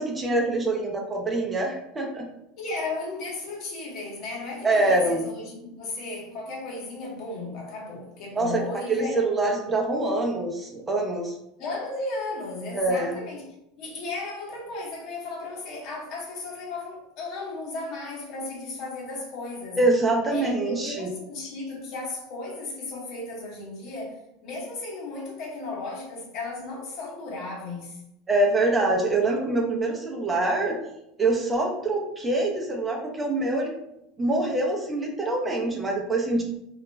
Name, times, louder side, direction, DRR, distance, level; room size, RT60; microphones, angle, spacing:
voice 1, 0.0-2.3 4.6-5.3 8.3-8.6 8.9-11.3 12.7-13.2 19.8-21.1 28.3-30.8 31.2-33.7 34.2-36.4, right 2 dB, 20° right, 0 dB, 0.5 m, -25 dB
voice 2, 2.6-9.2 11.6-13.5 13.8-19.8 20.3-28.0, left 3 dB, 55° left, -1 dB, 0.9 m, -35 dB
2.3 x 2.1 x 3.1 m, 0.83 s
hypercardioid pair, 100°, 0 cm